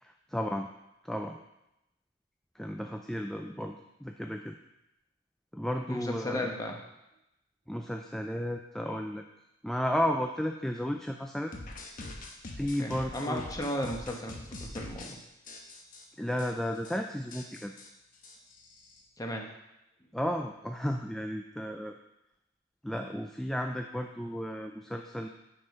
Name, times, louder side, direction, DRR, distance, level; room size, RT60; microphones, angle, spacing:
voice 1, 0.0-0.7 1.0-1.4 2.6-4.5 5.5-6.4 7.7-9.2 9.6-11.5 12.5-13.4 16.2-17.7 20.1-22.0 22.8-25.3, equal, ahead, 3 dB, 0.3 m, -33 dB
voice 2, 5.9-6.8 12.8-15.2 19.2-19.5, left 1 dB, 20° left, 1 dB, 1.1 m, -35 dB
sound 1, 11.5-15.1 15.5-16.0 16.4-16.5 16.8-17.0 17.3-19.0, left 2 dB, 45° left, 1.1 m, -44 dB
8.6 x 4.8 x 5.4 m, 0.89 s
head